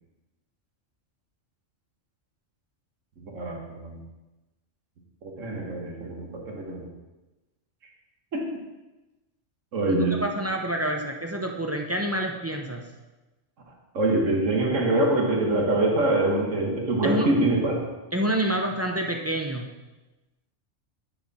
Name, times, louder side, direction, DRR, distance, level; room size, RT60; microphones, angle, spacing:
voice 1, 3.2-4.0 5.4-6.9 8.3-8.4 9.7-10.2 13.9-17.8, right 2 dB, 80° right, 0 dB, 1.8 m, -24 dB
voice 2, 9.9-12.8 17.0-17.3 18.1-19.7, right 1 dB, 20° right, 2 dB, 0.4 m, -27 dB
10.5 x 4.9 x 4.2 m, 1.1 s
omnidirectional pair, 1.3 m